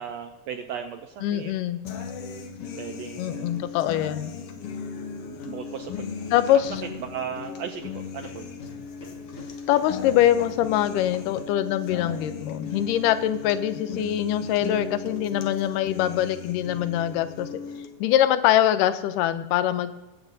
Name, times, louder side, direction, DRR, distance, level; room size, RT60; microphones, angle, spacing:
voice 1, 0.0-1.5 2.8-3.7 5.3-6.1 6.5-6.6 7.0-8.5, right 8 dB, 80° right, 5 dB, 1.5 m, -36 dB
voice 2, 1.2-1.8 3.2-4.3 6.3-6.8 9.7-17.6 18.0-20.0, left 12 dB, 90° left, 12 dB, 2.2 m, -23 dB
sound 1, 1.8-17.9, left 5 dB, 65° left, 1.5 m, -37 dB
sound 2, 5.6-11.5, left 1 dB, 35° left, 1.1 m, -48 dB
23.0 x 8.0 x 2.7 m, 1.1 s
omnidirectional pair, 3.7 m